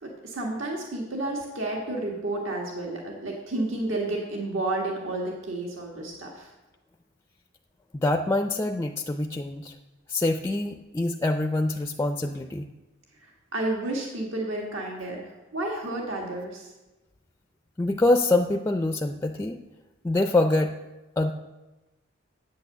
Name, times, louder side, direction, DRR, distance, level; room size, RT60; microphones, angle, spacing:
voice 1, 0.0-6.5 13.5-16.7, right 2 dB, 75° right, -1 dB, 1.7 m, -31 dB
voice 2, 7.9-9.7 10.1-12.7 17.8-19.6 20.0-20.7 21.2-21.3, left 2 dB, 15° left, 6 dB, 0.4 m, -25 dB
8.6 x 8.4 x 6.6 m, 1.1 s
head